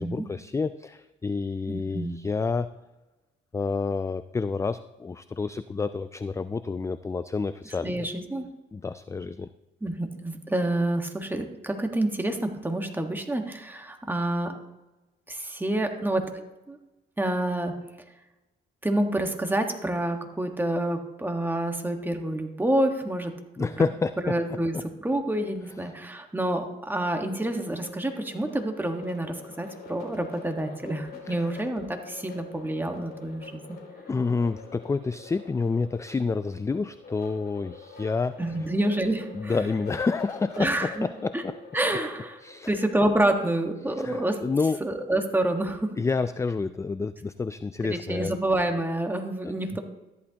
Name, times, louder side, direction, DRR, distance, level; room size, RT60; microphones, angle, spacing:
voice 1, 0.0-2.7 3.5-8.1 8.7-9.5 23.6-24.6 31.3-31.6 34.1-38.4 39.3-41.5 42.4-42.7 43.9-44.8 46.0-48.4 49.7-49.8, left 4 dB, 15° left, 13 dB, 0.3 m, -29 dB
voice 2, 1.7-2.1 7.8-8.5 9.8-14.5 15.3-16.3 16.7-16.8 17.2-17.7 18.8-23.3 23.6-23.7 24.2-33.8 38.4-39.6 40.6-41.1 41.3-41.4 41.7-42.4 42.7-44.4 44.8-45.9 47.8-49.8, right 1 dB, 10° right, 4 dB, 1.5 m, -28 dB
sound 1, 26.9-43.6, left 5 dB, 50° left, 3.1 m, -46 dB
13.5 x 11.0 x 2.9 m, 1.0 s
cardioid pair, 90°, 20 cm